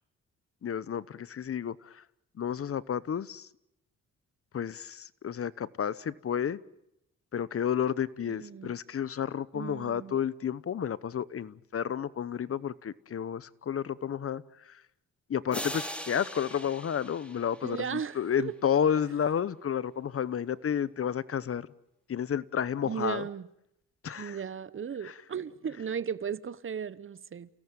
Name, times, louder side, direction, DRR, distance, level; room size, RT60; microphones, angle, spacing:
voice 1, 0.6-2.0 2.4-3.5 4.5-6.6 7.3-14.8 15.3-21.7 22.1-23.3 24.0-24.4 25.0-25.2, left 8 dB, 50° left, 1.0 m, -31 dB
voice 2, 8.3-8.7 9.5-10.2 17.6-18.5 22.8-23.5 24.2-27.5, right 7 dB, 45° right, 1.0 m, -36 dB
sound 1, 15.5-18.2, equal, 5° left, 4.1 m, -40 dB
30.0 x 17.5 x 9.1 m
cardioid pair, 85°, 29 cm